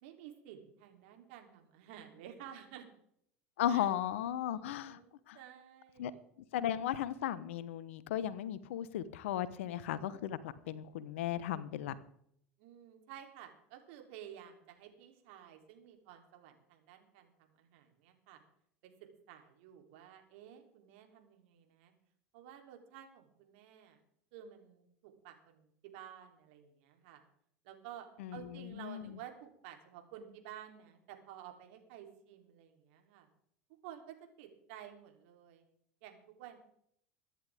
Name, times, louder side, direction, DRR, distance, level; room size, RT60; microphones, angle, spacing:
voice 1, 0.0-2.9 3.7-3.9 4.2-6.2 12.6-18.4 18.8-18.9 19.3-21.9 22.3-24.0 24.3-27.2 27.6-28.1 28.3-33.3 33.8-35.6 36.0-36.6, right 10 dB, 60° right, 4 dB, 3.3 m, -53 dB
voice 2, 3.6-5.0 5.3-5.4 6.0-6.1 6.5-12.0 28.2-29.1, left 11 dB, 70° left, 16 dB, 1.1 m, -36 dB
23.5 x 10.5 x 3.6 m, 0.68 s
hypercardioid pair, 80°, 7 cm